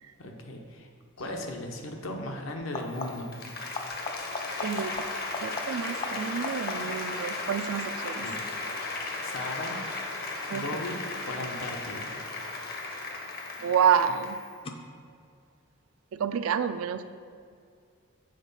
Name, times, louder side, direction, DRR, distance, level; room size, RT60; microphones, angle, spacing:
voice 1, 0.2-0.9 1.2-3.3 8.2-8.4 9.2-9.8 10.5-11.0 11.2-12.1, left 1 dB, 75° left, 2 dB, 0.9 m, -36 dB
sound 1, 1.2-1.4 2.6-3.4 3.7-7.1 12.5-13.1 14.6-14.7, left 3 dB, 25° left, 0.4 m, -39 dB
Applause, 2.9-14.5, left 3 dB, 45° left, 0.8 m, -36 dB
voice 2, 4.6-5.0 5.4-8.3 10.5-10.6 13.6-14.4 16.1-17.0, right 8 dB, 85° right, 11 dB, 0.4 m, -28 dB
7.8 x 4.0 x 5.4 m, 2.3 s
head